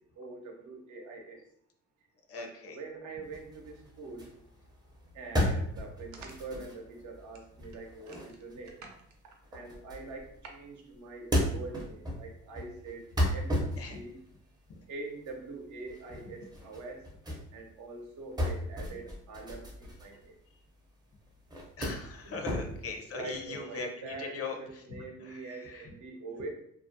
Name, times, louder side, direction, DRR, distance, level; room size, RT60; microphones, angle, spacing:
voice 1, 0.2-1.4 2.4-4.3 5.1-8.8 9.5-13.1 13.3-13.6 13.9-14.2 14.9-17.1 17.5-20.3 22.2-22.4 23.1-26.5, right 3 dB, 70° right, 2 dB, 0.6 m, -44 dB
voice 2, 2.3-2.8 13.8-14.0 14.7-14.8 21.8-24.8 25.2-25.9, left 4 dB, 50° left, 3 dB, 0.5 m, -40 dB
sound 1, 3.2-10.6 11.0-17.5 17.8-20.9 21.2-23.1, equal, 15° right, 0.5 m, -35 dB
2.3 x 2.0 x 2.6 m, 0.68 s
cardioid pair, 90°, 30 cm